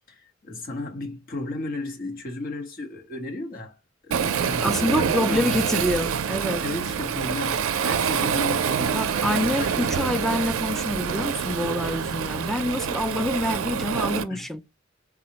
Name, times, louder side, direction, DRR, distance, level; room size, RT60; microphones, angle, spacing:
voice 1, 0.1-5.6 6.6-9.7 14.3-14.5, left 2 dB, 45° left, 1.1 m, -34 dB
Waves surf, 4.1-14.2, right 7 dB, 90° right, 0.4 m, -26 dB
voice 2, 4.6-6.6 8.9-14.6, left 1 dB, ahead, 0.3 m, -26 dB
3.8 x 2.1 x 2.8 m
head